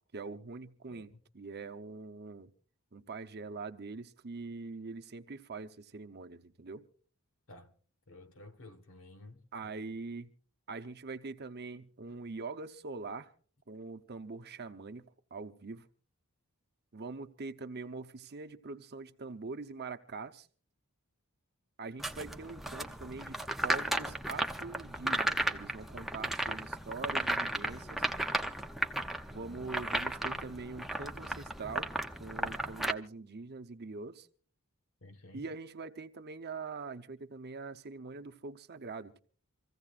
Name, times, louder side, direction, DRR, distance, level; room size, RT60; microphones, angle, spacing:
voice 1, 0.1-2.5 2.9-6.8 9.5-10.3 10.7-13.3 13.7-15.9 16.9-20.5 21.8-28.1 29.3-31.9 32.2-34.3 35.3-39.2, right 4 dB, 50° right, 0.9 m, -43 dB
voice 2, 8.1-9.7 35.0-35.5, left 2 dB, 65° left, 1.6 m, -53 dB
sound 1, 22.0-32.9, right 1 dB, ahead, 0.7 m, -35 dB
26.5 x 15.5 x 2.5 m
head